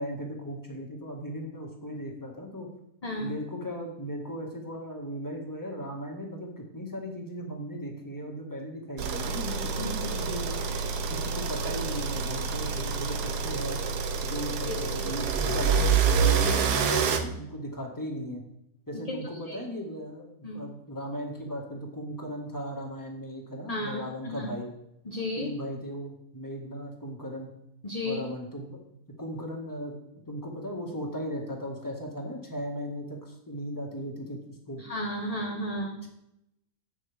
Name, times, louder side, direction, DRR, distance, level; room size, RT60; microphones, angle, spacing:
voice 1, 0.0-2.7 3.2-10.6 11.1-13.8 14.2-18.4 18.9-24.7 25.4-27.5 28.0-28.8 29.2-30.0 30.3-34.4 34.7-34.8 36.0-36.1, equal, 10° left, 0 dB, 1.7 m, -37 dB
voice 2, 3.0-3.3 9.7-9.9 14.6-15.1 19.1-19.2 19.5-19.6 20.4-20.6 23.7-24.5 25.0-25.5 27.8-28.2 34.8-36.0, left 1 dB, 25° left, 0 dB, 1.0 m, -33 dB
sound 1, 9.0-17.2, right 6 dB, 85° right, 1.4 m, -27 dB
11.0 x 8.2 x 3.5 m, 0.82 s
omnidirectional pair, 1.7 m